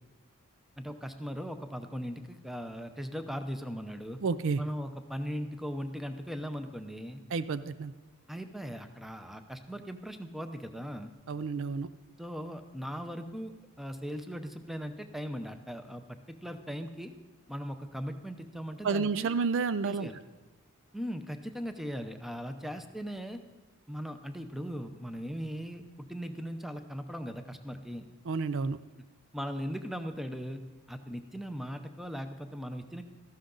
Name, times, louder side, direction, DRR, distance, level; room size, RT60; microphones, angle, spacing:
voice 1, 0.8-4.2 4.6-7.2 8.3-11.1 12.2-13.5 13.8-17.1 17.5-19.3 19.9-20.2 20.9-23.4 23.9-28.1 29.3-30.6 30.9-33.0, equal, ahead, 7 dB, 0.7 m, -39 dB
voice 2, 4.2-4.6 7.3-7.9 11.3-11.9 18.8-20.1 28.3-28.8, right 4 dB, 65° right, 14 dB, 0.4 m, -30 dB
14.0 x 11.5 x 3.9 m, 1.2 s
head